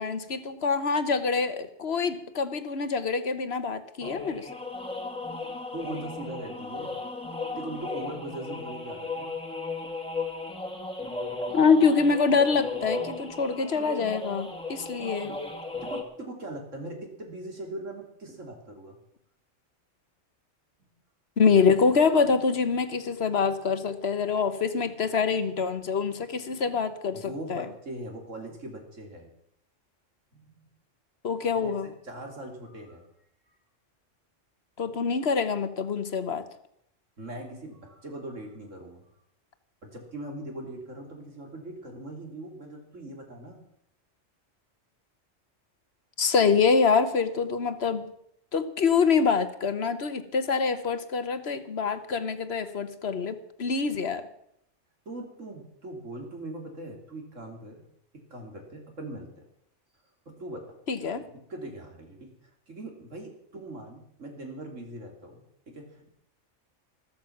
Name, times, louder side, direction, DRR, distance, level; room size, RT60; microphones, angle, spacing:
voice 1, 0.0-4.5 11.5-15.4 21.4-27.6 31.2-31.9 34.8-36.5 46.2-48.1 48.5-54.3 60.9-61.2, left 5 dB, 55° left, 11 dB, 1.4 m, -25 dB
sound 1, 4.0-16.0, left 3 dB, 5° left, 1.8 m, -36 dB
voice 2, 5.7-6.9 7.6-9.4 15.8-19.0 27.1-29.3 30.3-30.6 31.6-33.1 37.2-39.0 39.8-43.6 55.1-57.8 58.3-59.4 60.4-60.7 61.0-62.3 62.7-66.1, right 1 dB, 75° right, 2 dB, 3.5 m, -40 dB
14.5 x 13.5 x 6.0 m, 0.72 s
omnidirectional pair, 1.3 m